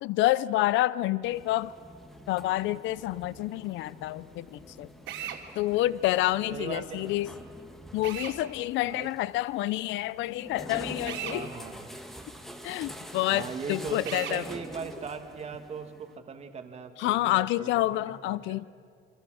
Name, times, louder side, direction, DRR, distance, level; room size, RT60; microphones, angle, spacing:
voice 1, 0.0-1.7 2.3-4.9 5.6-7.3 7.9-11.5 12.6-14.4 17.0-18.6, left 16 dB, 65° left, 19 dB, 0.6 m, -28 dB
sound 1, 1.2-16.2, equal, ahead, 1.5 m, -46 dB
Drill, 5.1-5.4 8.0-8.4 11.0-11.4 14.0-14.4, right 10 dB, 70° right, 3.0 m, -36 dB
voice 2, 6.5-7.2 8.8-9.1 11.3-11.9 13.3-18.6, right 5 dB, 30° right, 6 dB, 1.9 m, -39 dB
28.0 x 26.0 x 6.4 m, 2.1 s
cardioid pair, 160°, 21 cm